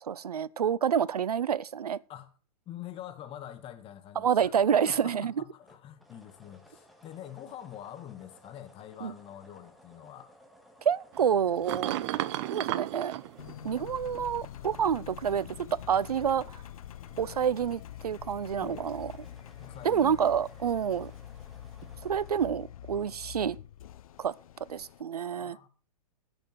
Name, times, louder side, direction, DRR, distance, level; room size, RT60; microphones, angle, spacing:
voice 1, 0.0-2.0 4.2-5.3 9.0-9.1 10.8-12.0 12.5-13.2 13.6-16.4 17.2-19.1 19.8-21.1 22.0-23.6 24.2-24.3 24.7-25.6, right 8 dB, 80° right, 0.7 m, -28 dB
voice 2, 2.7-4.5 4.9-10.4 18.6-18.9 19.6-20.2 25.3-25.7, left 11 dB, 30° left, 1.9 m, -45 dB
sound 1, 5.6-14.8 18.3-22.5, equal, ahead, 2.8 m, -59 dB
sound 2, 11.1-14.4 15.3-16.4 17.1-17.6 21.8-21.9, right 15 dB, 45° right, 1.0 m, -35 dB
Engine, 13.4-25.0, left 11 dB, 65° left, 0.9 m, -46 dB
16.5 x 9.0 x 4.7 m
hypercardioid pair, 115°, 19 cm